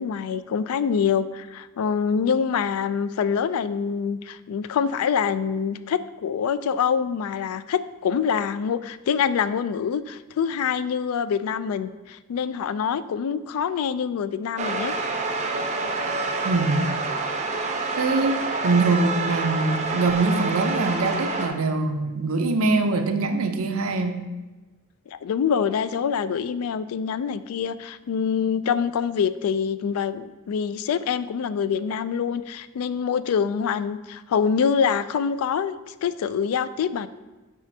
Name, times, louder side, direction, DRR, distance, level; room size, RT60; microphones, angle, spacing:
voice 1, 0.0-14.9 25.1-35.7 36.0-37.1, left 7 dB, 80° left, 15 dB, 0.3 m, -25 dB
sound 1, 14.6-21.5, right 3 dB, 30° right, 0.5 m, -27 dB
voice 2, 16.4-16.9 18.0-24.2, right 3 dB, 75° right, 6 dB, 0.6 m, -23 dB
8.4 x 5.0 x 2.7 m, 1.2 s
head